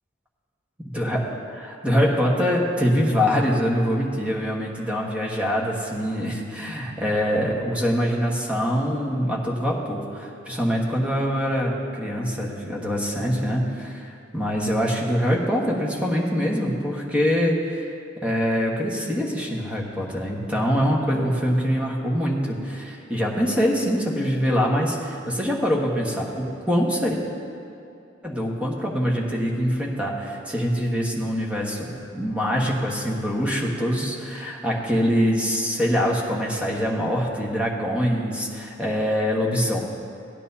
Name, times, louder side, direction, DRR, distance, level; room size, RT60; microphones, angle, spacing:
voice 1, 0.8-1.2 1.5-17.8 18.2-27.2 28.2-39.8, equal, 5° right, -3 dB, 1.3 m, -24 dB
16.5 x 10.0 x 2.8 m, 2.6 s
head